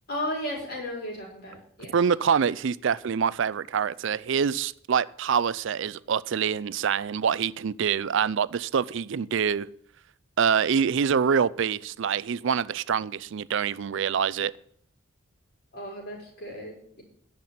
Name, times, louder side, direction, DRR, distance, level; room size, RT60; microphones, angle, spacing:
voice 1, 0.1-1.9 15.7-17.0, left 1 dB, 50° left, 4.7 m, -35 dB
voice 2, 1.9-9.7 10.4-14.5, right 7 dB, 60° right, 0.4 m, -25 dB
10.5 x 6.0 x 8.4 m
head